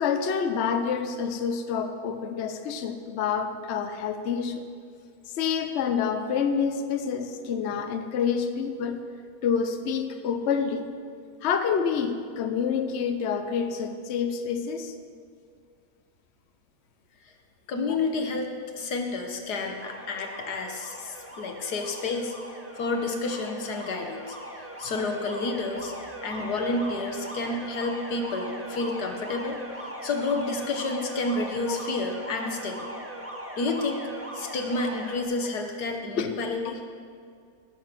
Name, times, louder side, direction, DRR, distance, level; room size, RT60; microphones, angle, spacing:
voice 1, 0.0-4.6 5.3-9.0 9.4-10.9 11.4-14.9 31.7-31.8 36.2-36.3, left 6 dB, 55° left, 7 dB, 0.9 m, -27 dB
voice 2, 17.7-22.3 22.8-24.4 24.8-25.9 26.2-29.6 30.0-32.9 33.6-34.0 34.3-36.8, left 3 dB, 90° left, 3 dB, 1.8 m, -30 dB
Alarm, 19.6-35.2, right 1 dB, 10° right, 1.6 m, -40 dB
17.5 x 6.9 x 5.9 m, 2.2 s
omnidirectional pair, 1.7 m